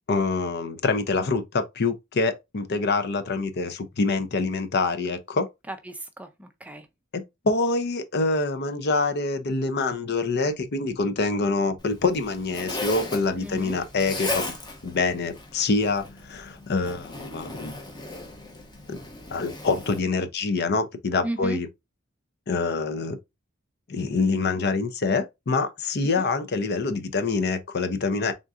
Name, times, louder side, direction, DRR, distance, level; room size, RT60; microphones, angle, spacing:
voice 1, 0.1-5.5 7.1-14.5 14.8-17.8 18.9-19.0 19.3-21.7 22.5-23.2 23.9-28.3, left 3 dB, 55° left, 0.6 m, -26 dB
voice 2, 5.7-6.9 13.4-13.8 21.2-21.6 26.2-26.3, right 1 dB, 5° right, 0.4 m, -35 dB
Zipper (clothing), 11.8-20.0, left 2 dB, 20° left, 0.9 m, -36 dB
3.7 x 3.7 x 2.4 m
head